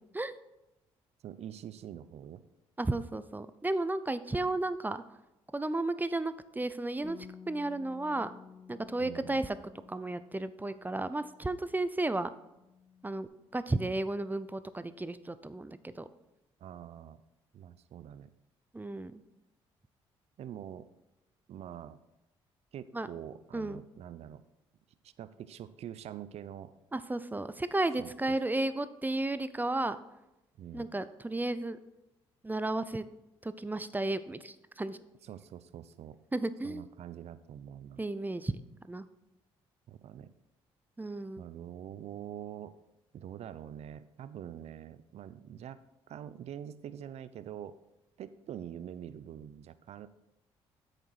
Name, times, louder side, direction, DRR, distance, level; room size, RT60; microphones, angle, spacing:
voice 1, 1.2-2.4 9.0-9.4 16.6-17.2 17.5-18.3 20.4-20.9 21.5-22.0 22.7-24.4 25.0-26.7 28.0-28.1 30.6-30.9 35.2-36.2 36.6-38.0 39.9-40.3 41.4-42.8 43.1-45.8 46.1-47.8 48.2-50.1, right 10 dB, 65° right, 14 dB, 0.6 m, -45 dB
voice 2, 2.8-5.0 5.5-7.2 7.5-8.3 8.7-9.6 9.9-12.3 13.0-13.3 13.5-16.1 18.7-19.2 22.9-23.1 23.5-23.8 26.9-30.0 30.7-31.8 32.4-33.0 33.4-35.0 36.3-36.9 38.0-38.6 38.9-39.1 41.0-41.4, right 2 dB, 15° right, 13 dB, 0.6 m, -33 dB
Bass guitar, 7.0-11.7 12.0-13.3, left 6 dB, 50° left, 3.0 m, -54 dB
8.5 x 6.7 x 4.7 m, 0.94 s
supercardioid pair, 60°, 12 cm